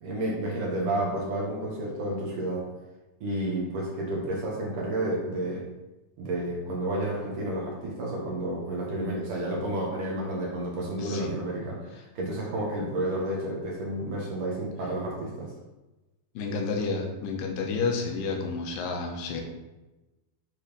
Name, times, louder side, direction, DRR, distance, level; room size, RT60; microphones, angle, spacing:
voice 1, 0.0-2.6 3.2-5.6 6.2-15.5, right 1 dB, 55° right, -4 dB, 2.9 m, -31 dB
voice 2, 11.0-11.3 16.3-19.4, left 4 dB, 65° left, 1 dB, 2.5 m, -30 dB
9.7 x 4.2 x 5.2 m, 1.1 s
omnidirectional pair, 4.7 m